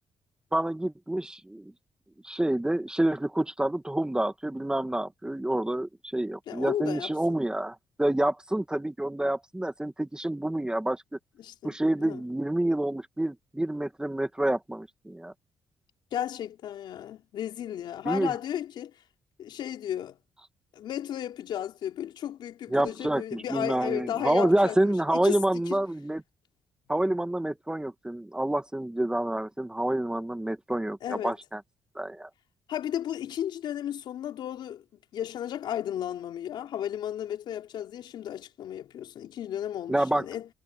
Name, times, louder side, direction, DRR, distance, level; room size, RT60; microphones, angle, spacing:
voice 1, 0.5-1.7 2.2-11.0 11.6-15.3 18.0-18.3 22.7-26.2 26.9-31.6 32.0-32.3 39.9-40.2, right 1 dB, 10° right, 2.1 m, -28 dB
voice 2, 6.5-7.2 11.4-12.2 16.1-18.9 19.4-20.2 20.7-25.8 31.0-31.3 32.7-34.8 35.1-40.5, left 10 dB, 70° left, 3.6 m, -34 dB
supercardioid pair, 65°, 8 cm